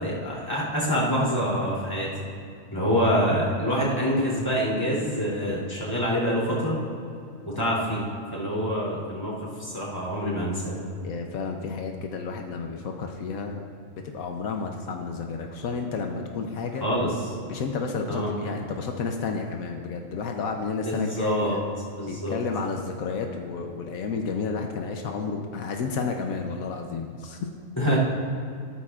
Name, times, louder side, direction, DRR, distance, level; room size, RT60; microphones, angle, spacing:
voice 1, 0.0-2.1 2.7-6.8 7.4-8.0 8.3-10.8 16.8-17.1 18.1-18.3 20.8-21.6 22.0-22.4 27.8-28.0, equal, 15° left, -7 dB, 3.0 m, -26 dB
voice 2, 11.0-13.6 14.1-16.8 17.5-21.6 22.1-27.5 27.9-28.0, left 5 dB, 80° left, 3 dB, 1.2 m, -31 dB
14.5 x 13.0 x 2.4 m, 2.6 s
omnidirectional pair, 1.4 m